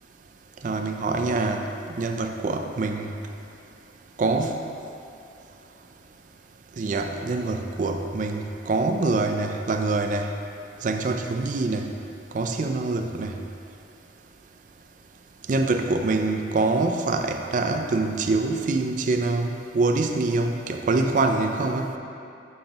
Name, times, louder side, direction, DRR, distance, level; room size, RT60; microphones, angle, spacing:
voice 1, 0.6-1.6 2.0-3.1 4.2-4.6 6.8-10.3 10.8-11.8 12.3-13.3 15.5-21.9, right 3 dB, 45° right, 5 dB, 0.4 m, -25 dB
7.1 x 5.1 x 2.9 m, 2.6 s
head